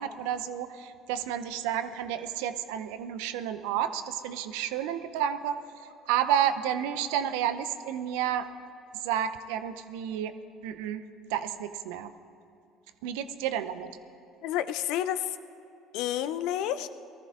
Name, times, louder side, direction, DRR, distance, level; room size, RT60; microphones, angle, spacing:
voice 1, 0.0-5.6 6.1-8.5 9.0-10.3 10.6-11.0 11.3-12.1 13.0-13.9, right 10 dB, 75° right, 11 dB, 0.6 m, -30 dB
voice 2, 14.4-15.4 15.9-16.9, left 11 dB, 70° left, 12 dB, 0.6 m, -30 dB
19.0 x 13.5 x 3.7 m, 2.7 s
hypercardioid pair, 65°, 0 cm